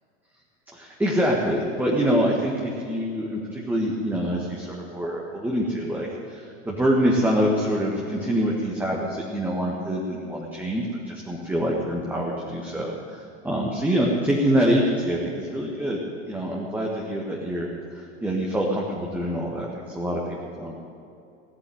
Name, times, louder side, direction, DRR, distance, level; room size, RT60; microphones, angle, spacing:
voice 1, 0.7-16.0 16.3-17.7 17.9-19.7 19.9-20.2 20.6-20.7, equal, 5° right, -3 dB, 1.8 m, -25 dB
16.5 x 7.3 x 9.4 m, 2.7 s
figure-of-eight pair, 90°, 36 cm